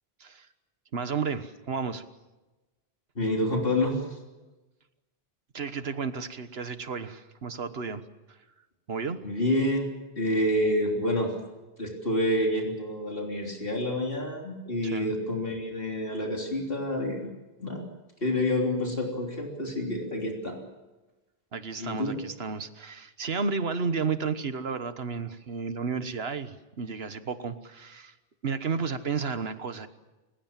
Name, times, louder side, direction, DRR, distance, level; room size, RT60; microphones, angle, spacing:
voice 1, 0.9-2.0 5.5-8.4 8.9-9.2 14.8-15.1 21.5-28.1 28.4-29.9, right 5 dB, 80° right, 11 dB, 1.5 m, -32 dB
voice 2, 3.2-4.2 9.2-11.3 11.8-17.3 17.6-17.9 18.2-20.6 21.8-22.2, left 1 dB, 65° left, 1 dB, 3.7 m, -28 dB
29.0 x 16.0 x 7.5 m, 1.1 s
omnidirectional pair, 1.0 m